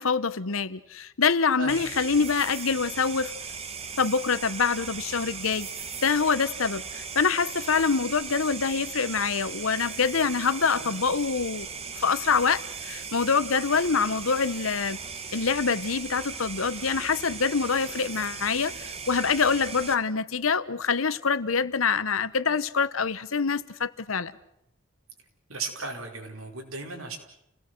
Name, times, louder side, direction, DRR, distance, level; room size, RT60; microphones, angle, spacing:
voice 1, 0.0-3.4 4.0-5.7 6.0-11.7 12.0-15.0 15.3-24.3, left 5 dB, 80° left, 1.0 m, -25 dB
sound 1, 1.7-19.9, right 5 dB, 30° right, 1.5 m, -38 dB
voice 2, 25.5-27.2, right 3 dB, 90° right, 5.0 m, -36 dB
30.0 x 18.0 x 7.9 m
head